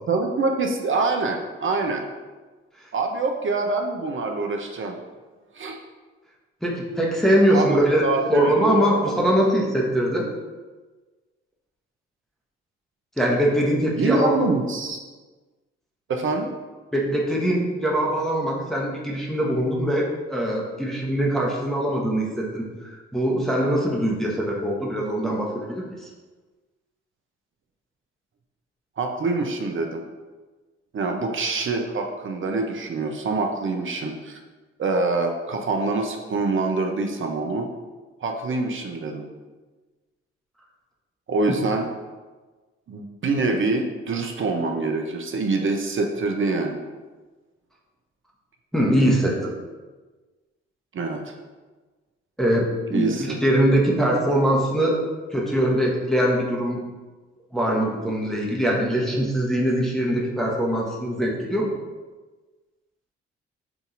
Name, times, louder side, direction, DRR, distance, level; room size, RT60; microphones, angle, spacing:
voice 1, 0.1-2.0 2.9-5.0 5.5-5.8 7.5-9.1 14.0-15.0 16.1-16.5 29.0-30.0 30.9-34.4 34.8-37.7 38.2-39.2 41.3-41.8 42.9-46.8 50.9-51.3 52.9-53.4, right 3 dB, 40° right, 3 dB, 0.6 m, -25 dB
voice 2, 6.6-8.0 8.3-10.3 13.2-14.4 16.9-26.1 41.5-41.6 48.7-49.5 52.4-55.0 55.3-56.8 57.5-61.7, equal, ahead, -3 dB, 1.1 m, -22 dB
5.6 x 2.7 x 2.5 m, 1.3 s
hypercardioid pair, 40°, 31 cm